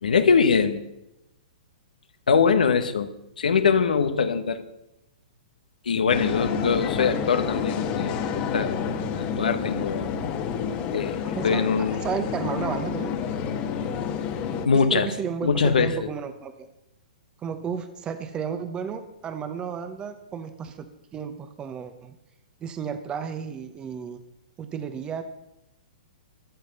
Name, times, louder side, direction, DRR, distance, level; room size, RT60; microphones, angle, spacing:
voice 1, 0.0-0.8 2.3-3.1 3.4-4.6 5.8-10.1 10.9-12.0 14.6-15.1 15.4-16.0, left 5 dB, 80° left, 9 dB, 1.2 m, -23 dB
sound 1, 6.1-14.7, left 7 dB, 35° left, 1.4 m, -29 dB
voice 2, 11.2-13.2 14.7-16.7 17.4-20.9 21.1-22.2 22.6-24.2 24.6-25.2, right 7 dB, 20° right, 9 dB, 1.0 m, -33 dB
15.0 x 11.0 x 5.4 m, 0.88 s
hypercardioid pair, 130°, 4 cm